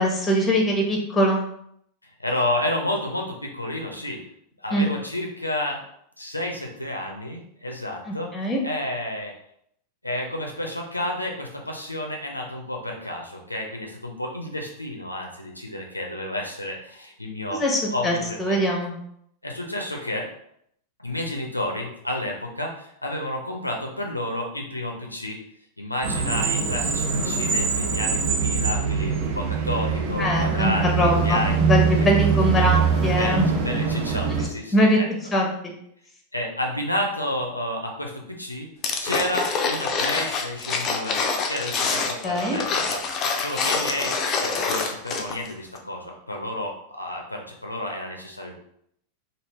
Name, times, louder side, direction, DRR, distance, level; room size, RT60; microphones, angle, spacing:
voice 1, 0.0-1.4 4.7-4.9 8.1-8.6 17.6-18.9 30.2-33.5 34.3-34.4 34.7-35.0 35.3-35.7 42.2-42.6, equal, 15° left, 0 dB, 0.9 m, -22 dB
voice 2, 2.2-4.2 4.6-5.8 6.2-8.3 8.6-9.3 10.0-17.6 17.9-18.6 19.4-20.3 21.0-25.4 25.8-31.6 32.0-32.1 33.2-33.4 33.6-35.1 36.3-38.7 39.0-41.2 41.5-43.0 43.4-48.6, left 1 dB, 85° left, 1 dB, 0.5 m, -30 dB
sound 1, 26.0-34.5, right 5 dB, 45° right, 0.5 m, -23 dB
sound 2, 38.8-45.5 45.7-45.8, left 4 dB, 30° left, 0.5 m, -26 dB
3.2 x 2.4 x 3.3 m, 0.71 s
figure-of-eight pair, 90°, 0 cm